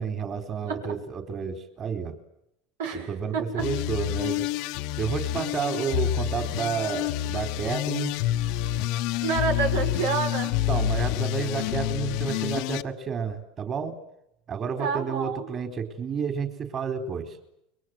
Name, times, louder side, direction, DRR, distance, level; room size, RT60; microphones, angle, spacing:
voice 1, 0.0-2.1 3.1-4.5 5.0-8.1 10.7-13.9 14.5-17.4, right 6 dB, 35° right, 7 dB, 4.3 m, -30 dB
voice 2, 2.8-3.7 9.2-10.5 14.8-15.5, right 5 dB, 90° right, 4 dB, 6.5 m, -28 dB
sound 1, 3.6-12.8, left 13 dB, 65° left, 1.3 m, -28 dB
29.5 x 23.0 x 8.0 m, 0.79 s
supercardioid pair, 115°, 0 cm